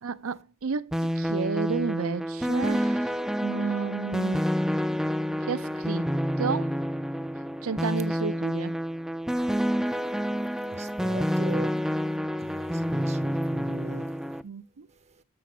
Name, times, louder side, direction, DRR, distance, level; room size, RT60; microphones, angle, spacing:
voice 1, 0.0-4.5 5.5-6.1 6.4-6.7 7.6-8.8 14.4-14.9, right 5 dB, 70° right, 0.6 m, -32 dB
sound 1, 0.9-14.4, equal, ahead, 0.4 m, -28 dB
voice 2, 10.7-11.7 12.4-14.1, right 3 dB, 30° right, 0.7 m, -38 dB
7.6 x 6.7 x 6.1 m
head